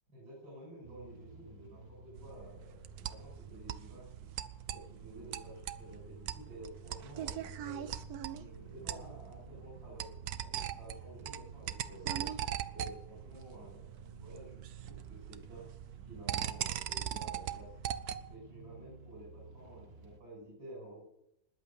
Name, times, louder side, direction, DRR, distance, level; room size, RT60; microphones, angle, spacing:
voice 1, 0.1-4.1 4.7-7.9 8.3-12.3 12.7-14.6 14.9-15.7 16.0-17.8 18.3-21.0, right 1 dB, 90° right, -5 dB, 7.4 m, -51 dB
sound 1, 0.8-20.2, right 5 dB, 35° right, 1.4 m, -53 dB
sound 2, 2.2-18.4, right 10 dB, 65° right, 1.1 m, -41 dB
20.5 x 8.3 x 7.0 m, 0.84 s
omnidirectional pair, 2.0 m